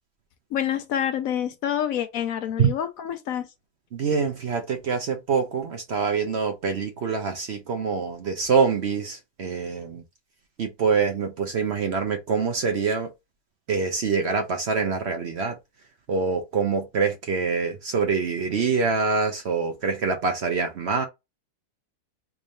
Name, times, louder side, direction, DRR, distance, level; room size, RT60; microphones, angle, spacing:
voice 1, 0.5-3.5, left 10 dB, 70° left, 1.0 m, -27 dB
voice 2, 3.9-10.0 10.6-13.1 13.7-15.5 16.1-21.1, right 5 dB, 55° right, 0.8 m, -25 dB
3.6 x 2.6 x 3.1 m
omnidirectional pair, 1.6 m